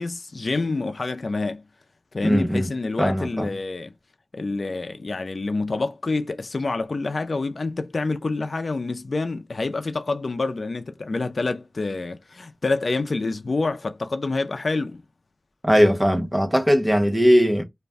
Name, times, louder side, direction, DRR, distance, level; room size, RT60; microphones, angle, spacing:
voice 1, 0.0-1.6 2.1-3.9 4.3-15.0, left 3 dB, 70° left, 0.4 m, -27 dB
voice 2, 2.2-2.7 3.0-3.5 15.6-17.6, equal, 15° right, 0.8 m, -19 dB
2.4 x 2.1 x 3.3 m
wide cardioid pair, 70°, 0 cm